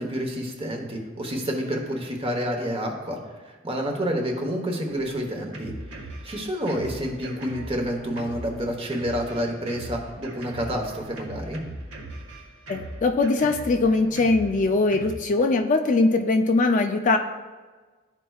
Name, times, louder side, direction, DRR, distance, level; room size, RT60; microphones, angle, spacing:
voice 1, 0.0-11.6, equal, 30° right, 2 dB, 1.0 m, -29 dB
Drum kit, 4.9-15.1, right 1 dB, 90° right, 1.3 m, -40 dB
voice 2, 12.7-17.2, left 3 dB, 40° left, 5 dB, 0.4 m, -21 dB
12.5 x 4.5 x 2.3 m, 1.3 s
head